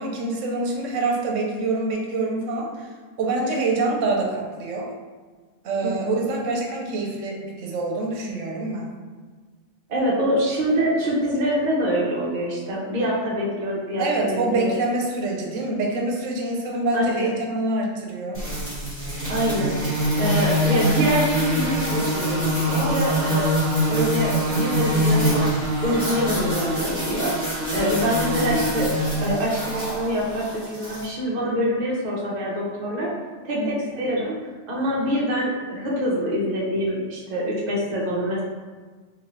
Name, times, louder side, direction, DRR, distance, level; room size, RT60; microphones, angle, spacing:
voice 1, 0.0-2.9 3.2-4.9 5.6-8.9 14.0-18.5 33.5-33.7, right 2 dB, 80° right, 0 dB, 0.9 m, -26 dB
voice 2, 5.8-6.3 9.9-14.7 16.9-17.3 19.3-19.8 20.2-23.5 23.9-25.3 25.8-28.9 29.2-33.1 33.4-34.3 34.7-38.4, equal, 45° right, -4 dB, 0.7 m, -25 dB
sound 1, 18.3-31.1, equal, 10° left, 1.3 m, -24 dB
3.0 x 2.6 x 2.9 m, 1.4 s
omnidirectional pair, 1.3 m